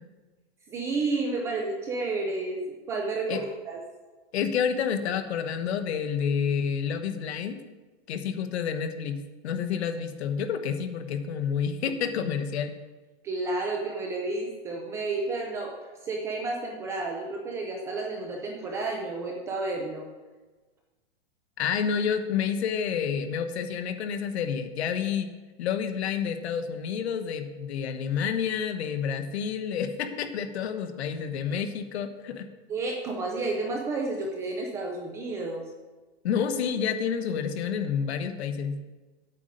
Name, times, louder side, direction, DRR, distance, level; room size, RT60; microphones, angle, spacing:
voice 1, 0.7-3.8 13.2-20.0 32.7-35.6, right 3 dB, 10° right, 1 dB, 0.3 m, -31 dB
voice 2, 4.3-7.6 8.1-12.7 21.6-25.3 25.6-32.5 36.2-38.8, left 7 dB, 70° left, 8 dB, 1.2 m, -29 dB
8.8 x 8.4 x 5.2 m, 1.2 s
supercardioid pair, 160°, 33 cm